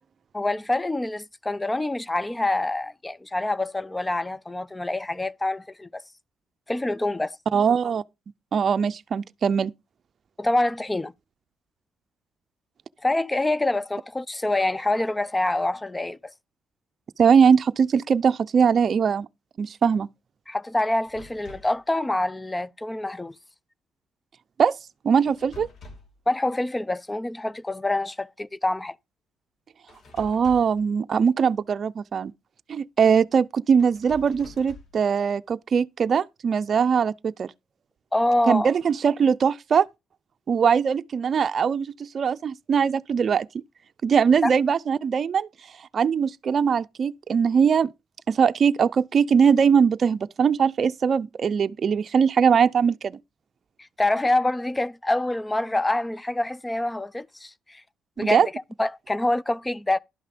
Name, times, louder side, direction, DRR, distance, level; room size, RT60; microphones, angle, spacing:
voice 1, 0.3-6.0 6.7-7.4 10.4-11.1 13.0-16.2 20.5-23.3 26.3-29.0 38.1-38.7 44.4-44.5 54.0-57.8 58.2-58.5 58.8-60.0, left 2 dB, 15° left, 0.5 m, -26 dB
voice 2, 7.5-8.0 8.5-9.7 17.2-19.3 19.6-20.1 24.6-24.8 25.0-25.7 30.2-32.3 32.7-37.5 38.5-39.9 40.5-43.5 44.0-45.5 45.9-47.9 48.3-53.2 58.2-58.5, right 6 dB, 50° right, 0.5 m, -21 dB
sound 1, 21.1-21.8 25.3-26.2 29.9-30.9 33.8-35.0, left 2 dB, 60° left, 2.8 m, -46 dB
11.5 x 5.6 x 5.2 m
cardioid pair, 90°, 0 cm